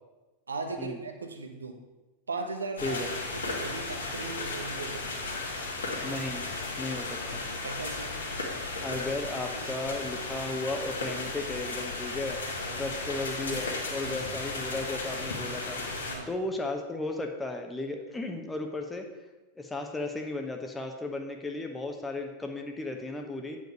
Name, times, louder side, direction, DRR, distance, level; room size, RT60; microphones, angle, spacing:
voice 1, 0.5-1.8 2.3-5.1 7.6-8.2 9.5-9.7 10.1-10.2 12.6-12.8 14.0-14.2 16.1-16.3, right 3 dB, 75° right, 4 dB, 1.1 m, -38 dB
sound 1, 2.8-16.2, left 3 dB, 70° left, 1.9 m, -35 dB
voice 2, 6.0-6.5 6.8-7.4 8.8-12.4 12.8-15.8 16.3-19.1 19.5-23.6, left 2 dB, 10° left, 3 dB, 1.0 m, -35 dB
9.0 x 5.2 x 6.7 m, 1.1 s
figure-of-eight pair, 90°, 0 cm